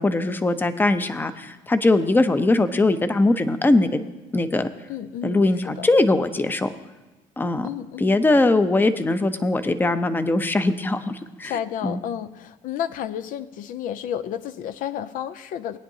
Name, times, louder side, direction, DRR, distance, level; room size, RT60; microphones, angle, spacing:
voice 1, 0.0-4.0 4.3-4.7 5.2-6.7 7.4-7.7 8.0-11.5 11.8-12.0, left 2 dB, 15° left, 10 dB, 0.6 m, -21 dB
voice 2, 4.9-5.9 7.6-8.2 11.4-15.8, left 9 dB, 70° left, 13 dB, 0.5 m, -31 dB
20.0 x 9.7 x 2.8 m, 1.1 s
cardioid pair, 110°, 14 cm